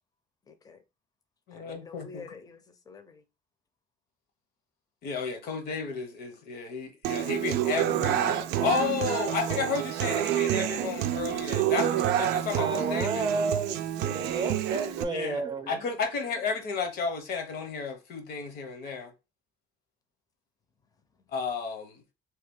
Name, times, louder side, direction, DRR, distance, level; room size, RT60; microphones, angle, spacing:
voice 1, 0.4-0.8 1.5-3.2 21.1-21.2, left 4 dB, 20° left, 0.6 m, -48 dB
voice 2, 1.5-2.2 5.0-13.3 15.1-19.1 21.3-22.0, left 5 dB, 65° left, 0.9 m, -32 dB
Human voice / Acoustic guitar, 7.0-15.0, right 11 dB, 85° right, 0.4 m, -28 dB
voice 3, 12.6-15.8, right 3 dB, 25° right, 0.6 m, -31 dB
2.8 x 2.3 x 3.5 m
cardioid pair, 110°, 17 cm